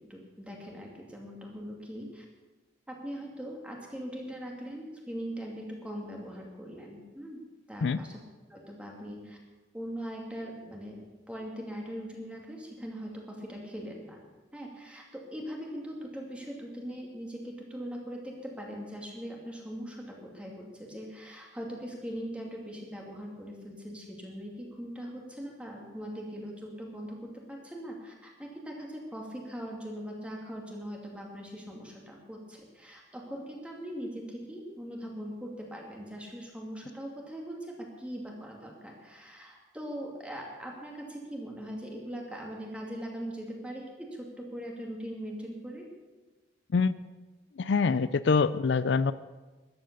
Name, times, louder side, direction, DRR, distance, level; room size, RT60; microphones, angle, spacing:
voice 1, 0.0-2.2 2.9-7.4 7.7-8.2 8.5-9.4 9.7-11.0 11.3-14.2 14.5-45.9, equal, 5° right, -1 dB, 2.4 m, -41 dB
voice 2, 47.6-49.1, left 5 dB, 70° left, 15 dB, 0.4 m, -25 dB
14.0 x 11.5 x 6.8 m, 1.2 s
head